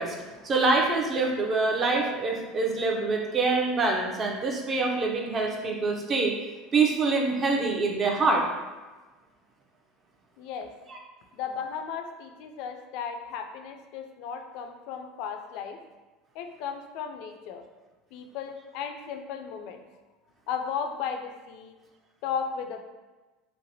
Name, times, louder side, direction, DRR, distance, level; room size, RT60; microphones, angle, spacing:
voice 1, 0.0-6.3 6.7-8.4 10.9-11.0, right 3 dB, 35° right, 1 dB, 0.5 m, -25 dB
voice 2, 10.4-10.7 11.3-15.8 16.3-17.6 18.1-19.8 20.5-21.7 22.2-22.8, left 7 dB, 65° left, 5 dB, 0.3 m, -35 dB
3.1 x 2.1 x 2.7 m, 1.2 s
hypercardioid pair, 95°, 0 cm